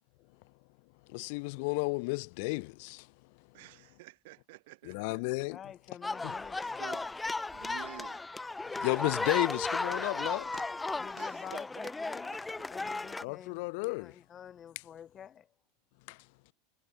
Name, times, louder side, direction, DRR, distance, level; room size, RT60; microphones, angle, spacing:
voice 1, 1.1-3.1 4.8-5.6 6.2-6.4 8.7-10.4 13.2-14.2 16.1-16.2, left 30 dB, 60° left, 0.7 m, -33 dB
voice 2, 3.5-5.2 6.6-7.1 7.5-8.2 10.0-10.6 11.2-13.0, right 21 dB, 70° right, 3.5 m, -51 dB
voice 3, 5.5-7.1 11.0-12.4 12.7-15.5, left 9 dB, 30° left, 6.2 m, -49 dB
sound 1, 6.0-13.2, left 3 dB, 10° left, 0.7 m, -35 dB
supercardioid pair, 135°, 0 cm